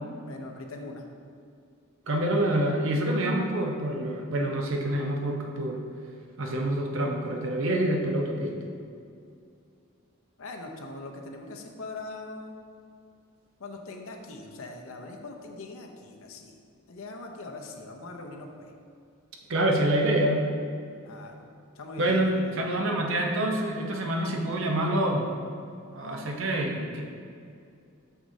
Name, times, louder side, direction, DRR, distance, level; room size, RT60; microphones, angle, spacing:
voice 1, 0.2-1.1 10.4-12.6 13.6-16.5 16.9-18.7 21.0-21.4 21.8-22.7, left 2 dB, 70° left, 2 dB, 0.7 m, -41 dB
voice 2, 2.1-5.9 6.4-8.5 19.5-20.5 22.0-25.3 25.9-27.0, right 1 dB, 60° right, 1 dB, 0.7 m, -26 dB
6.5 x 6.1 x 2.7 m, 2.4 s
head